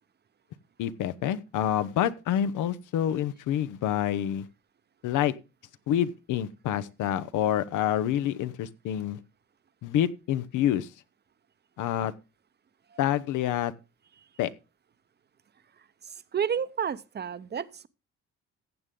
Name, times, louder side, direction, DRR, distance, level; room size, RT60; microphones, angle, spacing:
voice 1, 0.8-4.4 5.0-5.3 5.9-9.2 9.8-10.9 11.8-12.1 13.0-13.7 14.4-14.5, left 11 dB, 85° left, 0.8 m, -27 dB
voice 2, 16.3-17.9, right 7 dB, 35° right, 0.7 m, -30 dB
15.0 x 7.7 x 3.7 m
cardioid pair, 90°, 30 cm